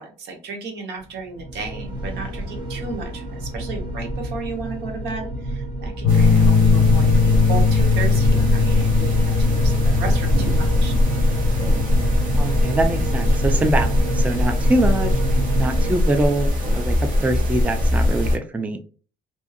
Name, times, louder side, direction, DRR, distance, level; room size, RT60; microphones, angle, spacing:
voice 1, 0.0-10.9, right 4 dB, 80° right, 3 dB, 1.0 m, -34 dB
sound 1, 1.3-15.9, right 1 dB, 25° right, 0.9 m, -27 dB
sound 2, 6.0-13.3, left 5 dB, 85° left, 0.4 m, -21 dB
sound 3, 6.1-18.4, left 1 dB, 55° right, 0.8 m, -21 dB
voice 2, 12.3-15.1 15.6-16.5 16.7-18.9, right 1 dB, 10° right, 7 dB, 0.3 m, -23 dB
2.6 x 2.4 x 2.5 m, 0.39 s
cardioid pair, 110°, 17 cm